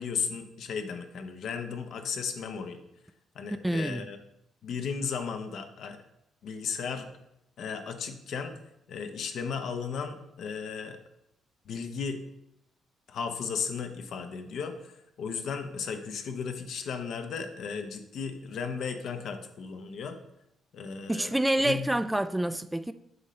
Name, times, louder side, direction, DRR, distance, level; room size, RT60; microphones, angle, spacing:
voice 1, 0.0-2.8 3.3-4.2 4.6-6.0 6.4-7.1 7.6-8.5 8.9-11.0 11.7-12.2 13.1-14.9 15.2-20.2 20.7-21.3 21.6-21.9, left 6 dB, 70° left, 0.8 m, -35 dB
voice 2, 3.6-4.1 21.1-22.9, right 1 dB, 10° right, 0.3 m, -27 dB
7.9 x 5.5 x 3.2 m
cardioid pair, 90°, 0 cm